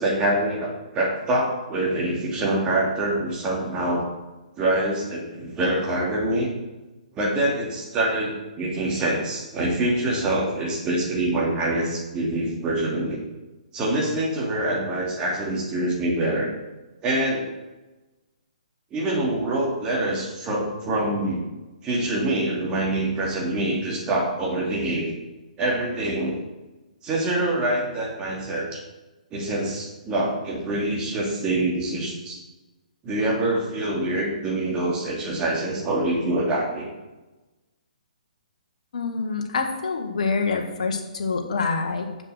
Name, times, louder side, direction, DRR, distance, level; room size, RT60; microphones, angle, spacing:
voice 1, 0.0-4.0 4.6-6.5 7.1-13.2 13.7-16.5 17.0-17.5 18.9-21.5 21.8-25.1 25.6-26.4 27.0-28.8 29.3-32.4 33.0-36.9, right 1 dB, 20° right, -3 dB, 2.7 m, -25 dB
voice 2, 38.9-42.1, left 4 dB, 55° left, 3 dB, 1.7 m, -26 dB
7.4 x 6.7 x 6.6 m, 1.1 s
figure-of-eight pair, 130°, 4 cm